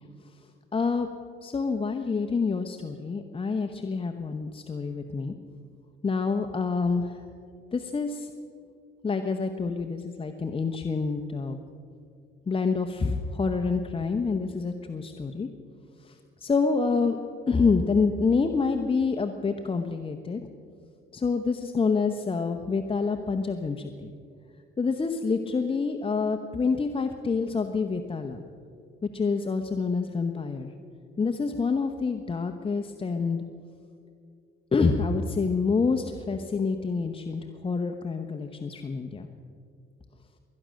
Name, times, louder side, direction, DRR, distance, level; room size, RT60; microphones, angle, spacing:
voice 1, 0.7-1.1 1.4-5.3 6.0-7.2 7.7-8.3 9.0-11.6 12.5-15.5 16.0-16.1 16.4-17.2 17.5-20.4 21.1-24.1 24.8-28.4 29.1-30.7 31.2-33.4 34.7-39.3, left 4 dB, 30° left, 5 dB, 0.9 m, -27 dB
21.5 x 10.5 x 6.4 m, 2.3 s
cardioid pair, 90°, 20 cm